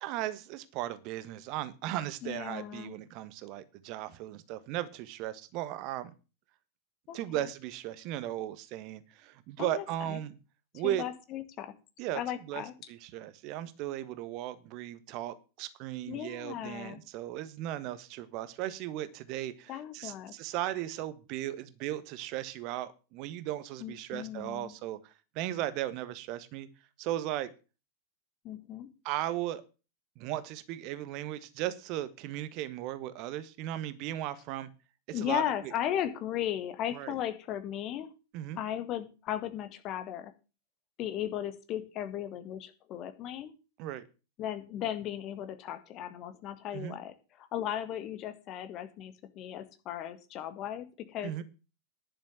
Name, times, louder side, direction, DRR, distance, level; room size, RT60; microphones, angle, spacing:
voice 1, 0.0-6.1 7.1-10.4 10.7-11.0 12.0-12.2 12.5-26.7 27.0-27.5 29.0-29.6 30.2-34.7 35.1-35.7 36.9-37.1 38.3-38.6 43.8-44.0 46.7-47.0 51.2-51.4, right 13 dB, 40° right, 14 dB, 1.3 m, -36 dB
voice 2, 2.2-3.0 7.1-7.5 9.6-10.2 10.8-11.7 12.1-12.7 16.1-17.0 19.7-20.3 23.8-24.7 28.4-28.9 35.1-38.1 38.6-40.3 41.0-43.5 44.4-51.4, left 11 dB, 35° left, 10 dB, 1.8 m, -36 dB
11.0 x 6.8 x 7.8 m, 0.33 s
figure-of-eight pair, 90°, 0 cm